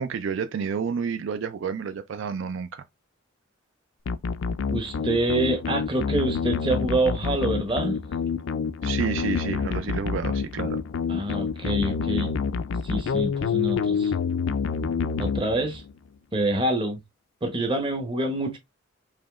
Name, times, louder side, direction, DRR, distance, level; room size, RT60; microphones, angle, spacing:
voice 1, 0.0-2.8 8.8-10.8, right 6 dB, 70° right, 0.3 m, -30 dB
sound 1, 4.1-15.9, left 5 dB, 70° left, 0.4 m, -27 dB
voice 2, 4.7-8.0 11.1-12.4 12.8-14.1 15.2-15.8 16.3-17.0 17.4-18.6, right 1 dB, 25° right, 0.9 m, -26 dB
5.0 x 2.8 x 2.4 m
head